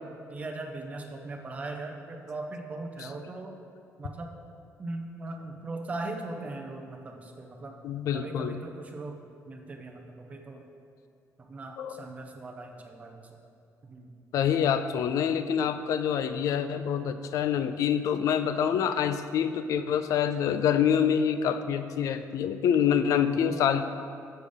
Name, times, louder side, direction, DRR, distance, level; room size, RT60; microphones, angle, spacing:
voice 1, 0.3-3.6 4.0-4.3 4.8-7.8 8.1-9.2 9.5-10.6 11.4-13.4 13.8-14.1, right 2 dB, 25° right, 2 dB, 0.6 m, -39 dB
voice 2, 7.8-8.6 11.8-12.1 14.3-23.8, left 8 dB, 70° left, 10 dB, 0.4 m, -26 dB
6.7 x 5.2 x 5.1 m, 2.4 s
cardioid pair, 175°, 6 cm